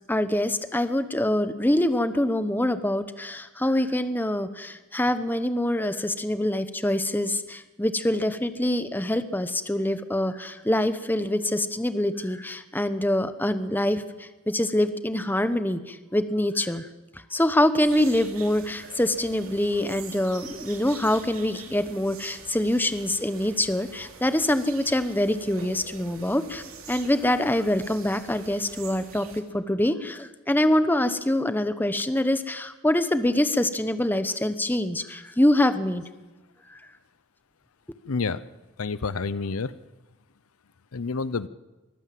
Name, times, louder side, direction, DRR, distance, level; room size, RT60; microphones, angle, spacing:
voice 1, 0.1-16.9 17.3-36.0 36.7-36.8, left 1 dB, 10° left, 10 dB, 0.9 m, -25 dB
sound 1, 17.8-29.4, right 6 dB, 80° right, 2.8 m, -45 dB
voice 2, 38.1-38.4 38.8-39.7 40.9-41.5, left 4 dB, 85° left, 17 dB, 0.7 m, -28 dB
23.5 x 15.5 x 7.6 m, 1.1 s
head